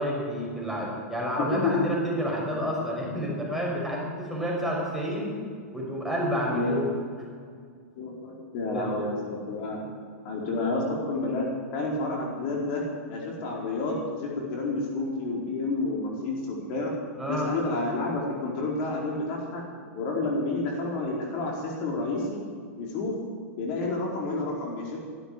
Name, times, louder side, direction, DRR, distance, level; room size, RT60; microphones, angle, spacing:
voice 1, 0.0-5.4 5.7-6.9 8.7-8.9 17.2-17.5, equal, ahead, -3 dB, 5.5 m, -29 dB
voice 2, 1.4-1.8 6.5-6.7 8.0-9.8 10.2-11.4 11.7-12.8 13.1-16.9 17.3-19.6 19.9-22.4 22.8-23.2 23.5-25.0, left 3 dB, 50° left, -2 dB, 4.5 m, -29 dB
14.5 x 12.5 x 7.6 m, 2.1 s
hypercardioid pair, 115°, 8 cm